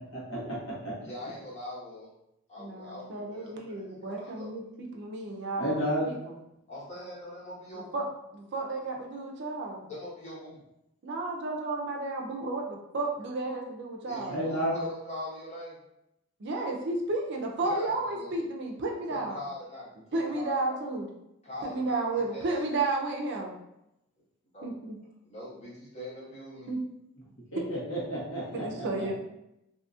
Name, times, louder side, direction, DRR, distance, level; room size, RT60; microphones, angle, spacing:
voice 1, 0.1-0.6 0.8-0.9 5.6-6.1 14.3-14.8 27.5-29.1, equal, 70° left, -7 dB, 1.2 m, -31 dB
voice 2, 1.0-2.1 2.5-4.5 6.7-8.0 9.8-10.6 14.0-15.8 17.6-18.3 19.1-20.8 21.4-22.8 24.5-24.7 25.2-26.7, left 1 dB, 35° left, -9 dB, 1.2 m, -42 dB
voice 3, 2.6-4.6 4.9-6.3 7.9-8.0 8.3-9.9 11.0-14.4 16.4-19.4 20.1-21.1 21.6-23.5 24.6-25.0 26.7-26.8 28.5-29.1, right 2 dB, 60° right, 1 dB, 0.5 m, -32 dB
2.7 x 2.7 x 2.4 m, 0.85 s
head